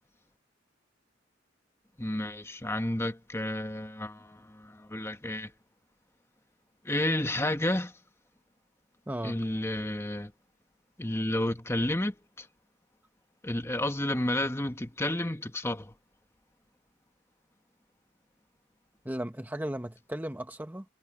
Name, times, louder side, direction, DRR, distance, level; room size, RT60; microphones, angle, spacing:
voice 1, 2.0-5.5 6.8-8.0 9.2-10.3 11.0-12.5 13.4-15.9, left 1 dB, 15° left, 1.2 m, -31 dB
voice 2, 9.1-9.4 19.0-20.8, right 1 dB, 10° right, 0.9 m, -35 dB
head